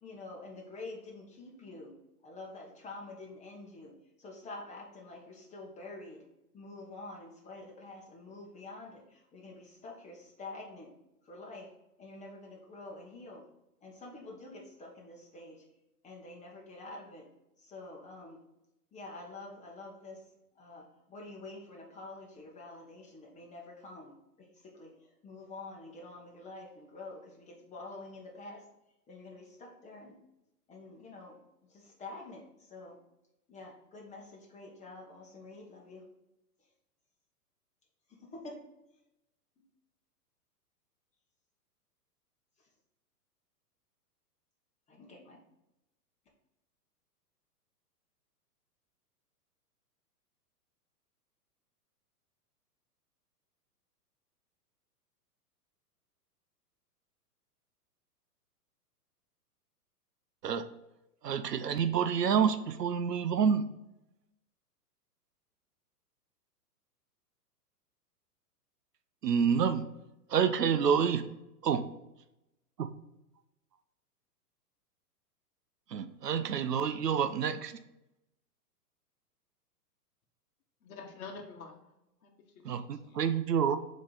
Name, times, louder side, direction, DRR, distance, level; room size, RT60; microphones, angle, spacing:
voice 1, 0.0-1.9 2.2-6.3 6.5-10.9 11.3-11.7 12.0-13.4 13.8-15.6 16.0-17.3 17.6-18.4 18.9-20.2 20.5-28.6 29.1-30.2 30.7-31.4 31.7-33.0 33.5-36.0 38.1-38.6 44.9-45.4, left 2 dB, 15° left, -1 dB, 1.2 m, -47 dB
voice 2, 61.2-63.6 69.2-69.8 70.3-71.2 71.6-71.8 72.8-72.9 75.9-77.8 82.6-83.8, right 7 dB, 75° right, 10 dB, 0.7 m, -28 dB
voice 3, 80.8-81.9 82.2-83.2, left 4 dB, 60° left, 2 dB, 1.1 m, -48 dB
7.2 x 3.2 x 4.1 m, 0.90 s
figure-of-eight pair, 110°, 48 cm